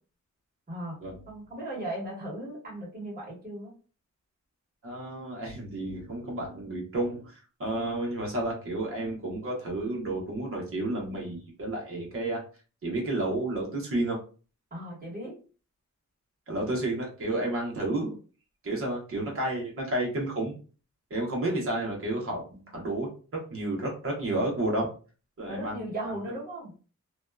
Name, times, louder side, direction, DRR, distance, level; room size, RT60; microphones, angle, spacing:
voice 1, 0.7-1.0 1.3-3.7 14.7-15.3 25.5-26.7, right 1 dB, 30° right, -5 dB, 1.4 m, -37 dB
voice 2, 4.8-12.4 12.8-14.2 16.5-18.2 18.6-20.6 21.1-24.9 25.4-26.2, right 2 dB, 45° right, -2 dB, 0.9 m, -31 dB
2.6 x 2.3 x 2.2 m, 0.37 s
wide cardioid pair, 155°, 30 cm